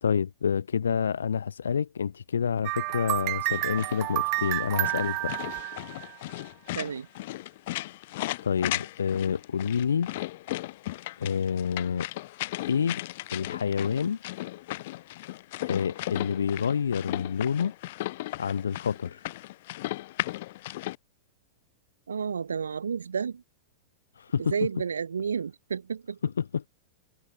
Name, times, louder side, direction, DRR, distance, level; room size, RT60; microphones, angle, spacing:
voice 1, 0.0-5.3 8.4-10.1 11.2-12.1 12.7-13.0 13.3-14.2 15.6-17.7 18.4-19.3 24.2-24.5 26.2-26.7, left 7 dB, 85° left, 1.7 m, -28 dB
sound 1, 2.6-6.4, right 29 dB, 50° right, 4.9 m, -30 dB
sound 2, 3.5-21.0, left 17 dB, 60° left, 2.7 m, -36 dB
voice 2, 6.7-7.1 22.1-23.4 24.4-26.2, right 6 dB, 90° right, 4.6 m, -31 dB
hypercardioid pair, 105°, 0 cm